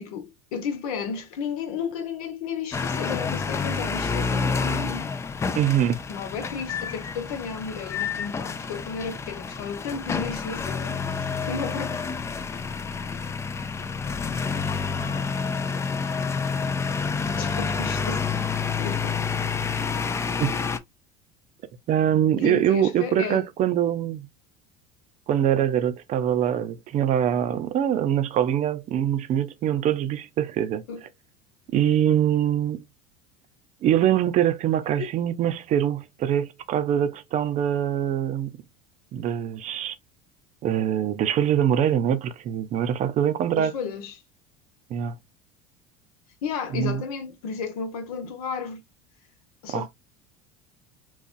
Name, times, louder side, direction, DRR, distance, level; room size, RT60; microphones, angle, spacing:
voice 1, 0.0-5.0 6.1-12.1 17.4-18.2 18.8-19.2 22.4-23.4 30.9-31.0 35.0-35.1 43.6-44.1 46.4-48.8 49.6-49.9, left 6 dB, 90° left, 1.2 m, -33 dB
sound 1, 2.7-20.8, left 5 dB, 15° left, 0.3 m, -28 dB
voice 2, 5.6-6.0 20.4-20.6 21.9-24.3 25.3-30.8 31.7-32.8 33.8-38.5 39.1-40.0 40.6-43.7 44.9-45.2 46.7-47.0 49.7-49.9, right 10 dB, 40° right, 0.6 m, -23 dB
4.0 x 2.4 x 2.6 m
supercardioid pair, 125°, 18 cm